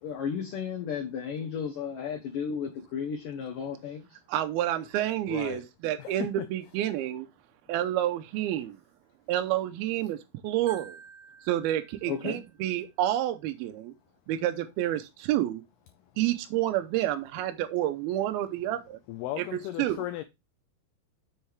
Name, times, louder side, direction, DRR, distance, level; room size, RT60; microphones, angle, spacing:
voice 1, 0.0-4.1 12.1-12.4, left 7 dB, 65° left, 2.2 m, -34 dB
voice 2, 4.3-7.3 7.7-8.8 9.3-10.2 10.4-11.0 11.5-13.9 14.3-15.6 16.2-19.0 19.4-20.0, right 13 dB, 85° right, 2.2 m, -29 dB
voice 3, 5.3-5.6 6.0-6.2 19.1-20.2, left 14 dB, 85° left, 2.2 m, -36 dB
Marimba xylophone, 10.7-12.7, right 4 dB, 40° right, 2.8 m, -51 dB
7.8 x 6.5 x 3.4 m
omnidirectional pair, 5.3 m